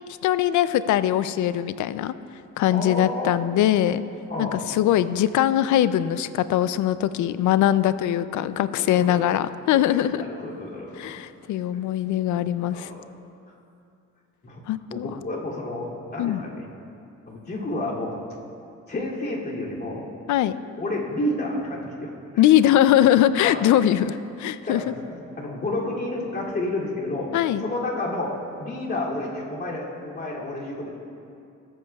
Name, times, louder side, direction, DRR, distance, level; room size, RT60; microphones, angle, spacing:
voice 1, 0.1-2.1 2.6-4.0 4.4-10.2 11.0-12.9 14.7-15.1 16.2-16.4 20.3-20.6 22.4-24.9 27.3-27.6, left 12 dB, 75° left, 14 dB, 0.5 m, -21 dB
voice 2, 2.7-3.3 4.3-4.6 8.8-9.2 9.9-11.2 11.7-11.8 12.7-13.1 14.4-14.6 14.9-16.6 17.3-18.2 18.9-20.1 20.8-22.4 23.4-23.7 24.7-27.3 27.6-31.0, left 1 dB, 35° left, -5 dB, 2.7 m, -30 dB
18.5 x 8.6 x 2.3 m, 2.6 s
cardioid pair, 90°, 30 cm